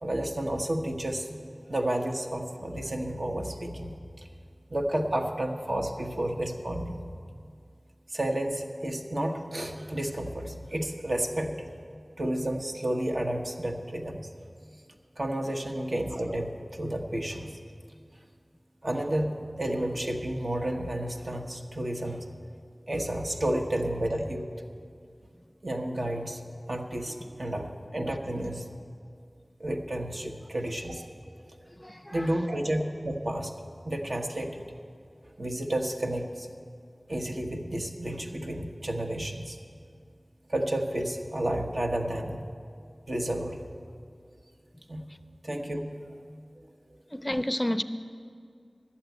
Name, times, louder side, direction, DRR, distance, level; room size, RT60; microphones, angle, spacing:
voice 1, 0.0-1.3 1.7-4.3 4.7-7.0 8.1-11.6 12.2-14.3 15.2-17.6 18.8-22.3 22.9-24.5 25.6-26.4 26.7-28.7 29.6-31.0 31.5-31.6 32.1-33.5 33.8-34.6 35.2-36.5 37.1-39.6 40.5-42.5 43.1-43.8 44.9-45.0 45.4-46.0, right 1 dB, 70° right, 1.0 m, -31 dB
voice 2, 31.8-32.3 47.1-47.8, left 1 dB, 20° left, 0.4 m, -30 dB
11.5 x 7.3 x 9.2 m
wide cardioid pair, 40°, 0 cm